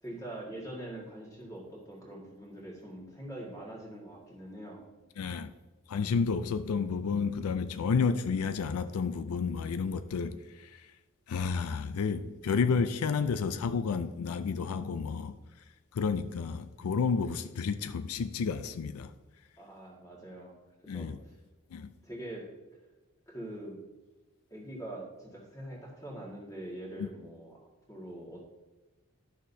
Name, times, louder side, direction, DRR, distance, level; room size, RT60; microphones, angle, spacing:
voice 1, 0.0-4.9 19.6-20.6 20.9-21.3 22.0-22.5 23.3-23.8 24.5-27.5 27.9-28.4, right 1 dB, 15° left, 1.7 m, -43 dB
voice 2, 5.2-5.5 5.9-10.9 11.3-15.4 15.9-19.1 20.9-21.2 21.7-21.9 27.0-27.1, left 5 dB, 85° left, 0.4 m, -31 dB
11.5 x 6.3 x 2.7 m
head